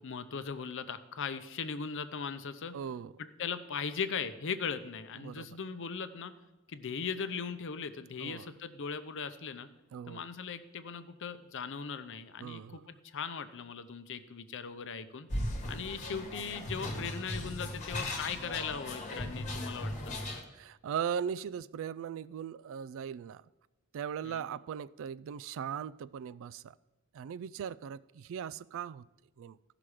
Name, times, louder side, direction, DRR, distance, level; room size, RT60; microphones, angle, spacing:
voice 1, 0.0-2.8 3.2-6.3 6.7-9.7 10.1-15.3 15.7-20.1 24.2-24.5, left 6 dB, 60° left, 11 dB, 0.7 m, -39 dB
voice 2, 2.7-3.1 5.2-5.6 8.2-8.5 9.9-10.2 12.4-12.8 20.5-23.4 23.9-26.7 27.1-29.1 29.4-29.6, right 8 dB, 65° right, 17 dB, 0.3 m, -39 dB
sound 1, 15.3-20.4, left 1 dB, 35° left, 1.3 m, -37 dB
15.0 x 6.0 x 4.9 m, 1.0 s
head